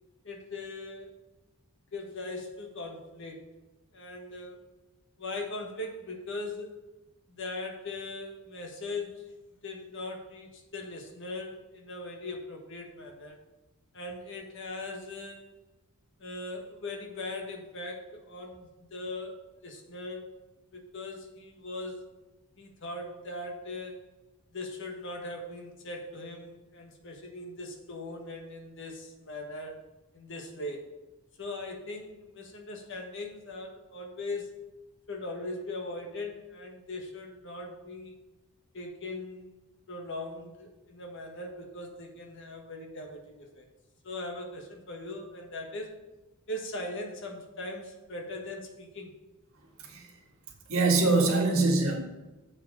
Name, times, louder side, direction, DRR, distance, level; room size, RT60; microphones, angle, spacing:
voice 1, 0.2-1.1 1.9-3.5 3.9-4.6 5.2-6.7 7.3-9.3 9.6-13.4 13.9-15.5 16.2-20.2 20.7-22.1 22.6-24.0 24.5-29.9 30.1-30.9 31.4-34.5 35.1-38.1 38.7-39.5 39.9-43.7 44.0-46.0 46.5-49.1, left 2 dB, 55° left, 2 dB, 1.3 m, -40 dB
voice 2, 50.7-52.0, right 3 dB, 65° right, 0 dB, 1.6 m, -24 dB
7.5 x 4.8 x 5.2 m, 1.1 s
head